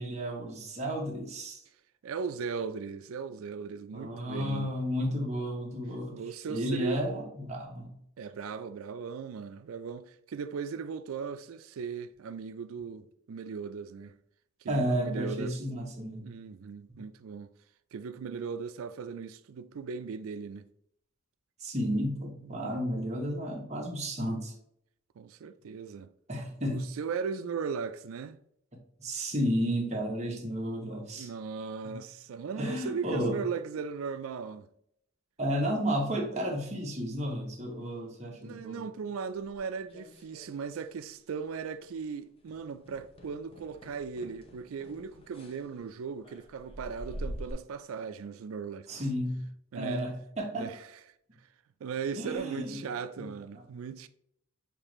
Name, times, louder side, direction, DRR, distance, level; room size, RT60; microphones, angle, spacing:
voice 1, 0.0-1.6 3.9-6.2 6.5-8.0 14.7-16.3 16.9-17.0 21.6-24.5 26.3-26.9 29.0-31.3 31.8-32.0 32.5-33.4 35.4-38.8 48.9-49.4 49.7-50.7 52.2-52.8 53.2-53.3, equal, 35° right, 1.1 m, -32 dB
voice 2, 2.0-4.7 6.1-7.0 8.2-14.2 14.6-15.6 16.2-17.5 17.9-20.7 22.5-23.0 25.2-26.1 26.7-28.4 31.1-34.7 38.4-48.9 49.7-50.0 50.5-50.8 51.8-54.1, right 6 dB, 85° right, 0.4 m, -38 dB
sound 1, 39.5-40.9 41.2-41.5 41.8-42.0 42.4-47.5, equal, 25° left, 0.6 m, -46 dB
6.8 x 2.5 x 3.0 m
head